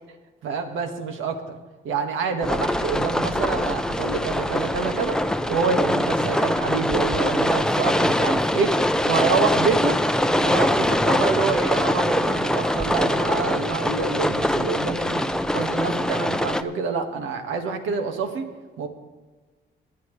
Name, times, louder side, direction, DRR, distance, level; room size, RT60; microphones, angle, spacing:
voice 1, 0.4-1.4 1.8-8.8 9.1-10.0 10.4-18.4 18.8-18.9, right 5 dB, 80° right, 5 dB, 1.8 m, -27 dB
sound 1, 2.4-16.6, left 1 dB, 5° left, 0.6 m, -23 dB
19.0 x 11.0 x 3.3 m, 1.4 s
cardioid pair, 90°, 20 cm